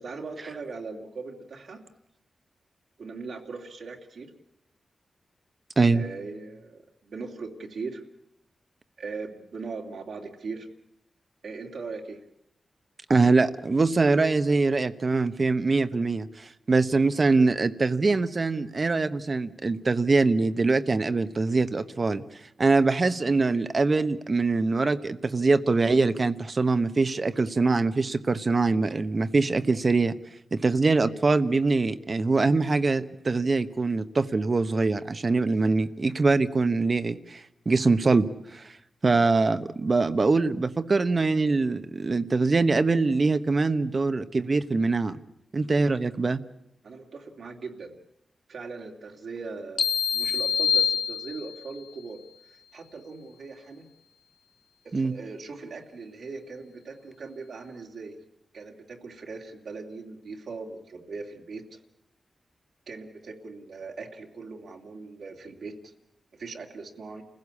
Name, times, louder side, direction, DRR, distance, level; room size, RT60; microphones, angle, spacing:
voice 1, 0.0-1.8 3.0-4.3 5.8-8.0 9.0-10.7 11.4-12.2 46.8-48.0 48.5-49.8 50.1-52.2 52.5-53.9 54.8-58.2 58.5-61.8 62.9-65.8 66.3-67.2, right 4 dB, 80° right, 0 dB, 2.8 m, -39 dB
voice 2, 13.1-22.2 22.6-30.1 30.5-38.7 39.0-45.2 45.5-46.4 54.9-55.1, right 3 dB, 45° right, 11 dB, 1.1 m, -23 dB
sound 1, 49.8-51.7, left 7 dB, 80° left, 0.8 m, -25 dB
28.5 x 16.0 x 8.5 m, 0.80 s
cardioid pair, 75°, 0 cm